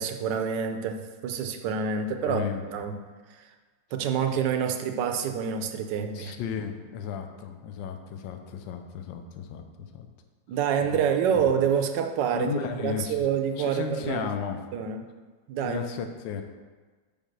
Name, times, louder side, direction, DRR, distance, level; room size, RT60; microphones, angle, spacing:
voice 1, 0.0-2.4 2.7-3.0 3.9-6.3 10.5-14.3 14.7-15.0 15.5-15.8, right 7 dB, 75° right, 6 dB, 1.3 m, -27 dB
voice 2, 2.1-2.6 6.1-10.1 10.8-11.0 12.3-13.3 13.6-14.6 15.6-16.4, left 7 dB, 80° left, 6 dB, 1.4 m, -34 dB
5.3 x 5.1 x 6.5 m, 1.4 s
omnidirectional pair, 2.0 m